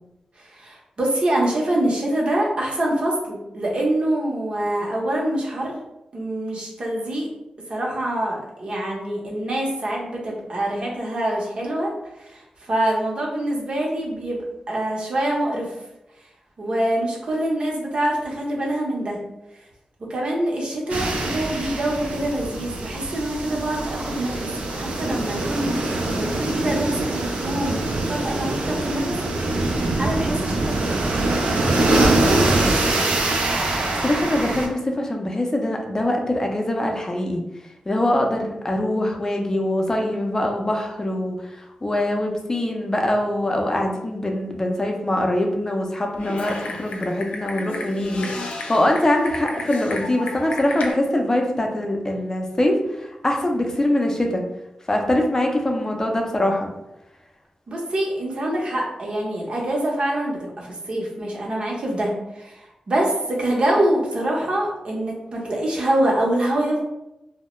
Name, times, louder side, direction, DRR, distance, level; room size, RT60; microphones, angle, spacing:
voice 1, 0.4-5.8 6.1-7.3 7.7-14.4 14.7-15.7 16.6-19.2 20.1-29.2 29.8-31.0 32.0-33.1 57.7-66.8, right 1 dB, 55° right, -2 dB, 0.7 m, -25 dB
sound 1, 20.9-34.7, right 2 dB, 90° right, 0.4 m, -23 dB
voice 2, 34.0-37.4 37.9-54.4 54.9-56.7, left 1 dB, 25° left, 2 dB, 0.4 m, -23 dB
Typing, 46.1-50.9, left 3 dB, 90° left, 0.3 m, -33 dB
2.2 x 2.0 x 3.0 m, 0.91 s
cardioid pair, 75°, 2 cm